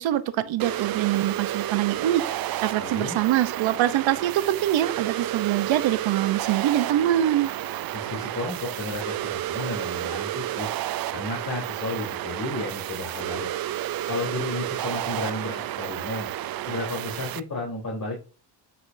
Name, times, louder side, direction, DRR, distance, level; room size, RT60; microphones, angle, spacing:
voice 1, 0.0-2.2 2.6-7.5, right 12 dB, 85° right, 0.9 m, -24 dB
sound 1, 0.6-17.4, right 13 dB, 55° right, 0.5 m, -31 dB
voice 2, 2.8-3.2 7.9-10.7 11.1-13.5 14.1-16.3 16.7-18.2, left 2 dB, 45° left, 3.6 m, -33 dB
9.6 x 5.1 x 2.7 m
cardioid pair, 100°, 45 cm